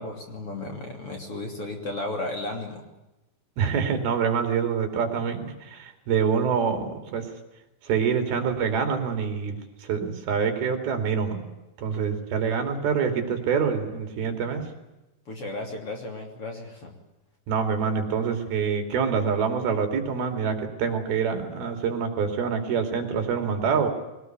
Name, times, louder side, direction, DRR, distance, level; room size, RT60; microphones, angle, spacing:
voice 1, 0.0-2.8 15.3-16.9, left 2 dB, 35° left, 3 dB, 3.5 m, -34 dB
voice 2, 3.6-7.3 7.8-11.5 11.8-14.7 17.5-23.9, right 6 dB, 65° right, 6 dB, 4.4 m, -26 dB
22.0 x 19.5 x 9.3 m, 0.99 s
omnidirectional pair, 4.8 m